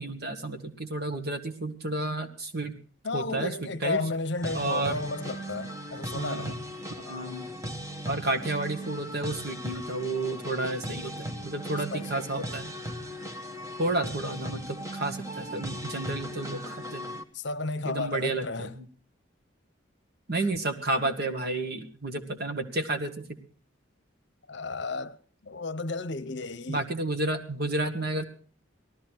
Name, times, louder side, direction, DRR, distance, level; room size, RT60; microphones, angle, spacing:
voice 1, 0.0-2.8 3.1-4.0 4.5-5.0 6.1-6.5 7.0-7.5 8.1-12.7 13.8-17.1 17.9-18.7 20.3-23.2 26.7-28.2, right 2 dB, 50° right, 1.7 m, -31 dB
voice 2, 3.0-6.6 11.6-12.6 17.3-18.7 20.4-20.5 24.5-25.2 25.4-26.9, left 3 dB, 60° left, 0.8 m, -33 dB
sound 1, 4.4-17.2, equal, 15° right, 1.3 m, -38 dB
18.5 x 14.0 x 4.6 m
head